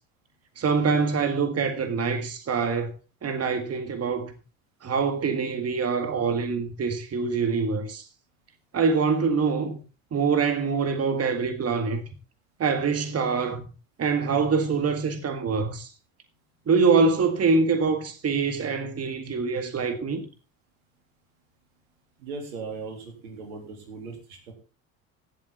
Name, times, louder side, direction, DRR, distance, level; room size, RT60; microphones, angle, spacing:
voice 1, 0.6-2.9 3.2-4.3 4.8-8.0 8.7-9.8 10.1-12.0 12.6-13.7 14.0-15.9 16.7-20.3, right 5 dB, 35° right, 1.9 m, -24 dB
voice 2, 22.2-24.5, right 4 dB, 85° right, 3.4 m, -38 dB
16.5 x 7.5 x 4.0 m
hypercardioid pair, 65°, 42 cm